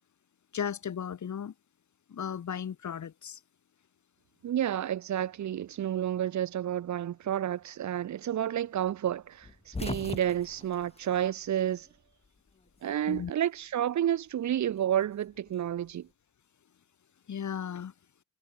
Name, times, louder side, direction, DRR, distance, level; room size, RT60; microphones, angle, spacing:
voice 1, 0.5-1.5 2.1-3.4 13.1-13.3 17.3-17.9, left 8 dB, 75° left, 1.4 m, -35 dB
voice 2, 4.4-11.9 12.8-16.1, right 10 dB, 75° right, 0.6 m, -30 dB
sound 1, 9.4-12.0 12.2-13.3 14.5-16.0, left 3 dB, 20° left, 0.8 m, -41 dB
wide cardioid pair, 85°, 29 cm